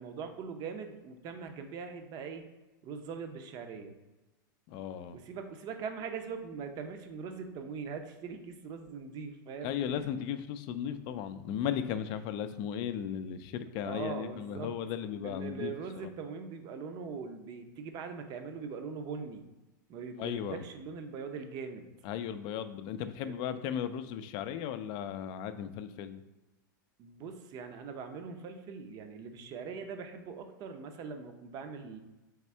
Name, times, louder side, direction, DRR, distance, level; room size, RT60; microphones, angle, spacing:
voice 1, 0.0-2.4 2.8-4.0 5.1-10.1 13.8-14.7 15.2-19.5 19.9-21.9 23.2-23.6 27.0-32.0, right 5 dB, 40° right, 6 dB, 0.6 m, -41 dB
voice 2, 4.7-5.2 9.6-15.7 20.2-20.6 22.0-26.2, left 9 dB, 45° left, 11 dB, 0.4 m, -36 dB
3.6 x 3.3 x 4.3 m, 1.1 s
hypercardioid pair, 120°, 11 cm